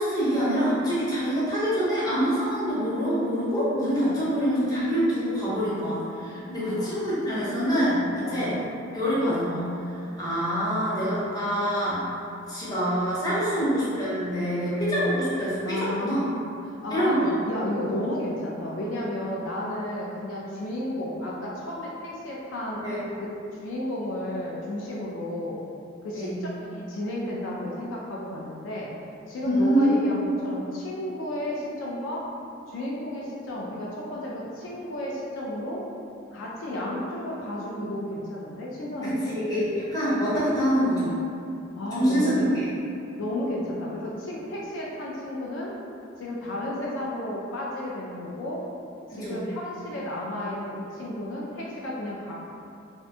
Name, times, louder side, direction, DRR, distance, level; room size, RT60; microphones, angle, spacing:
voice 1, 0.0-8.6 8.9-12.1 12.5-16.2 16.9-17.3 22.7-23.0 26.1-26.4 29.4-30.3 39.0-41.2 41.9-42.6 49.1-49.4, equal, 20° left, -10 dB, 0.7 m, -25 dB
voice 2, 6.6-7.0 8.2-8.5 13.4-13.6 15.6-16.4 16.7-17.2 17.5-22.8 23.2-23.3 23.6-25.6 26.0-28.9 29.3-32.2 32.7-35.8 36.3-39.3 41.8-42.5 43.2-45.7 46.2-48.6 49.1-52.3, left 1 dB, 65° left, -4 dB, 0.3 m, -32 dB
2.5 x 2.1 x 2.6 m, 2.6 s
head